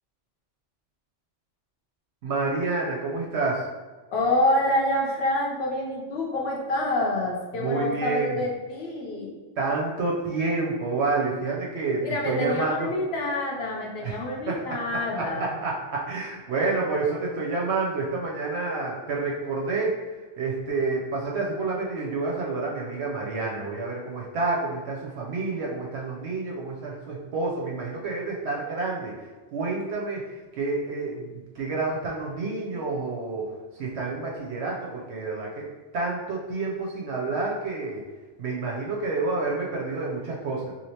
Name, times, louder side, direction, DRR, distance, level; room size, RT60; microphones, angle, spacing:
voice 1, 2.2-3.7 7.5-8.4 9.6-12.9 14.0-14.2 14.5-14.6 15.1-20.0 20.4-29.1 29.5-33.5 33.8-35.7 35.9-38.0 38.4-40.7, right 3 dB, 70° right, -2 dB, 0.8 m, -29 dB
voice 2, 4.1-9.4 12.0-15.5, left 1 dB, 65° left, -2 dB, 0.9 m, -27 dB
3.1 x 2.6 x 2.8 m, 1.3 s
omnidirectional pair, 1.2 m